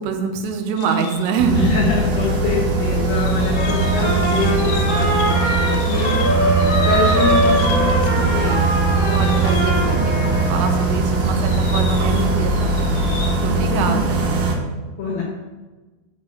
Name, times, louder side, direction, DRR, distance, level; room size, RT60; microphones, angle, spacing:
voice 1, 0.0-1.6 9.1-14.2, right 5 dB, 90° right, 5 dB, 3.5 m, -25 dB
sound 1, 0.8-1.4 2.2-2.3 3.0-8.3 8.6-10.2 10.7-13.5, left 6 dB, 90° left, 4.0 m, -35 dB
sound 2, 1.4-14.5, right 3 dB, 70° right, 2.1 m, -20 dB
voice 2, 1.5-6.3 6.9-8.6 13.5-14.0 15.0-15.2, left 3 dB, 70° left, -3 dB, 2.3 m, -24 dB
Trumpet, 3.5-10.9, equal, 20° left, 2.7 m, -23 dB
7.2 x 6.1 x 6.3 m, 1.2 s
omnidirectional pair, 5.7 m